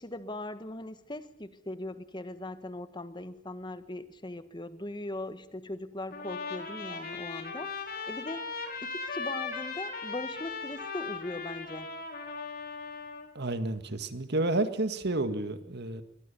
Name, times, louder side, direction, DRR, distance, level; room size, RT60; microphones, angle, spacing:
voice 1, 0.0-7.7 8.1-8.5 8.8-11.9, left 1 dB, 20° left, 11 dB, 1.5 m, -40 dB
Trumpet, 6.1-13.3, left 4 dB, 45° left, 4.7 m, -38 dB
voice 2, 13.4-16.0, right 2 dB, 55° right, 10 dB, 2.0 m, -30 dB
22.5 x 22.0 x 7.0 m, 0.80 s
head